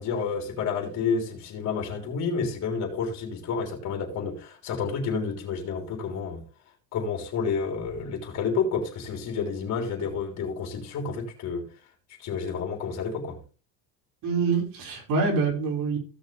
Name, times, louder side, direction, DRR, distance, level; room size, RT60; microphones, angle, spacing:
voice 1, 0.0-6.4 6.9-11.7 12.2-13.4, left 5 dB, 45° left, 3.7 m, -30 dB
voice 2, 14.2-16.0, right 4 dB, 60° right, 5.1 m, -25 dB
16.0 x 6.6 x 3.4 m
cardioid pair, 140°, 37 cm